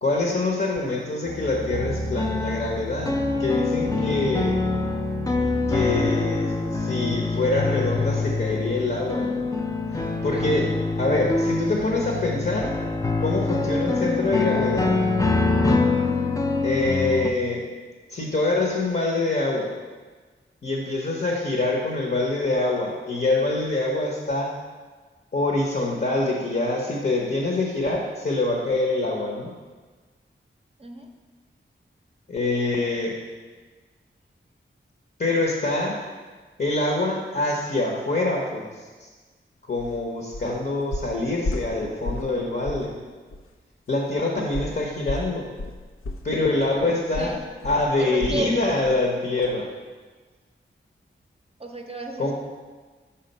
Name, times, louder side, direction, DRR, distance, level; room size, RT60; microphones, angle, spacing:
voice 1, 0.0-4.6 5.7-9.5 9.9-10.7 11.0-12.8 13.2-15.0 16.6-17.7 18.1-19.7 20.6-24.5 25.3-29.5 32.3-33.2 35.2-36.0 36.6-39.1 39.6-43.0 43.9-45.5 46.2-47.4 47.6-49.7 52.2-52.3, left 2 dB, 50° left, -1 dB, 0.9 m, -25 dB
sound 1, 1.3-17.3, left 3 dB, 15° left, 0.5 m, -25 dB
sound 2, 39.8-40.0 40.3-40.6 40.9-42.4 42.6-42.9 43.3-43.4 44.5-48.5 48.8-49.1 49.4-49.5, left 2 dB, 85° left, 0.6 m, -33 dB
voice 2, 48.0-48.5 51.6-52.3, right 3 dB, 30° right, 3 dB, 0.6 m, -33 dB
5.6 x 3.6 x 5.4 m, 1.4 s
wide cardioid pair, 65°, 21 cm